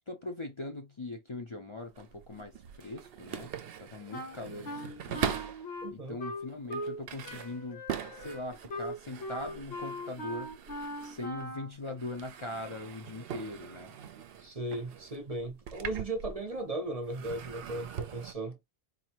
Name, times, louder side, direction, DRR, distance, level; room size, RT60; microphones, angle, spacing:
voice 1, 0.1-3.5 3.8-5.4 5.9-7.8 8.1-10.5 11.0-14.0, left 2 dB, 35° left, 0.6 m, -41 dB
sound 1, 1.8-5.7 6.3-11.6 11.8-16.7 17.0-18.3, right 8 dB, 65° right, 0.8 m, -42 dB
Wind instrument woodwind instrument, 4.1-7.0 7.2-11.8, equal, 65° left, 1.3 m, -40 dB
voice 2, 5.8-6.2 14.1-18.6, right 1 dB, 35° right, 0.8 m, -37 dB
4.1 x 2.6 x 2.9 m
omnidirectional pair, 1.1 m